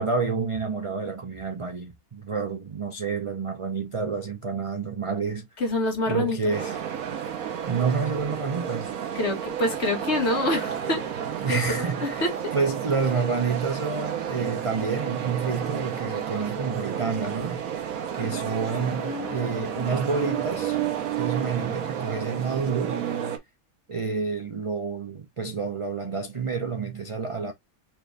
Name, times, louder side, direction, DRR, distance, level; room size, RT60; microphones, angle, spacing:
voice 1, 0.0-5.5 6.1-6.8 7.7-8.9 11.4-17.7 18.2-20.9 21.2-23.0 23.9-27.5, right 5 dB, 40° right, 0.4 m, -29 dB
voice 2, 5.6-6.6 9.2-11.1 11.5-12.5 18.7-20.1, left 1 dB, 50° left, 1.8 m, -28 dB
sound 1, 6.5-23.4, right 9 dB, 75° right, 1.3 m, -31 dB
4.5 x 2.6 x 3.3 m
omnidirectional pair, 1.5 m